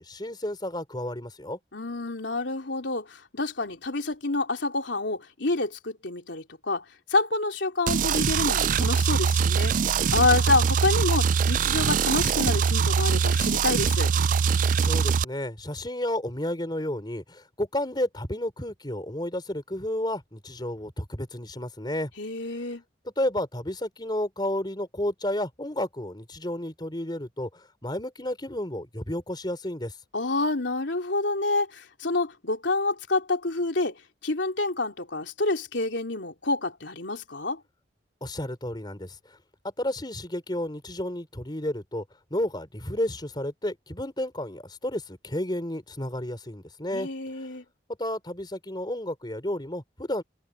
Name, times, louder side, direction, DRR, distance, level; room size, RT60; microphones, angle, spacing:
voice 1, 0.0-1.6 14.8-22.1 23.2-29.9 38.2-39.2 39.8-42.0 42.3-47.1 47.4-47.5 48.0-50.2, left 1 dB, 25° left, 4.3 m, -31 dB
voice 2, 1.7-6.8 7.1-9.8 10.1-14.1 22.2-22.8 30.1-37.6 46.9-47.6, left 2 dB, 80° left, 3.2 m, -28 dB
sound 1, 7.9-15.2, right 6 dB, 45° right, 0.4 m, -23 dB
head